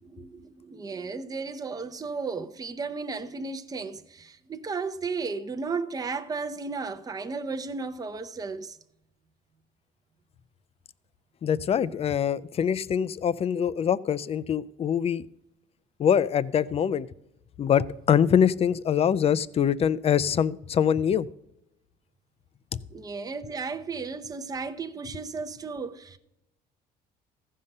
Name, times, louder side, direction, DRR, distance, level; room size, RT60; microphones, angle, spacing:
voice 1, 0.0-8.8 22.9-26.2, right 4 dB, 20° right, 0.7 m, -34 dB
voice 2, 11.4-15.2 16.0-17.1 17.6-21.3 22.7-22.8, left 8 dB, 35° left, 0.5 m, -24 dB
14.5 x 5.6 x 6.6 m
cardioid pair, 110°, 17 cm